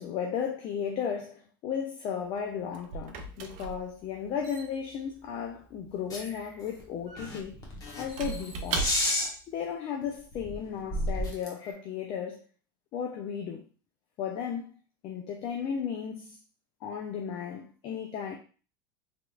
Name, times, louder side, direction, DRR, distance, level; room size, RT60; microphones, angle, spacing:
voice 1, 0.0-7.6 8.0-8.9 9.5-12.4 12.9-13.7 14.2-14.7 15.0-16.4 16.8-18.4, left 7 dB, 50° left, 0.6 m, -35 dB
Squeak / Wood, 2.2-9.4, right 4 dB, 60° right, 0.6 m, -39 dB
sound 1, 6.1-6.5 6.8-6.9 7.2-9.3 10.0-10.1 10.3-11.7, left 1 dB, 30° left, 1.2 m, -32 dB
3.5 x 3.0 x 2.4 m
hypercardioid pair, 95°, 12 cm